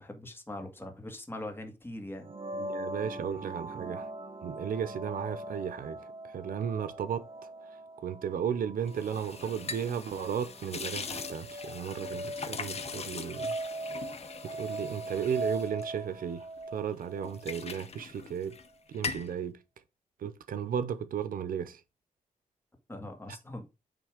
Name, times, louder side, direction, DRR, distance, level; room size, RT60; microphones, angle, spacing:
voice 1, 0.0-2.3 22.9-23.6, left 1 dB, 15° left, 1.8 m, -41 dB
sound 1, 2.2-17.8, right 1 dB, 40° right, 1.1 m, -41 dB
voice 2, 2.5-4.1 4.4-6.0 6.3-7.2 8.0-13.5 14.4-16.4 16.7-18.6 18.9-19.6 20.2-21.8, right 8 dB, 85° right, 0.8 m, -34 dB
sound 2, 8.9-16.6 17.0-18.7 18.9-19.3, left 5 dB, 50° left, 0.9 m, -41 dB
9.1 x 3.2 x 5.0 m
wide cardioid pair, 125°, 14 cm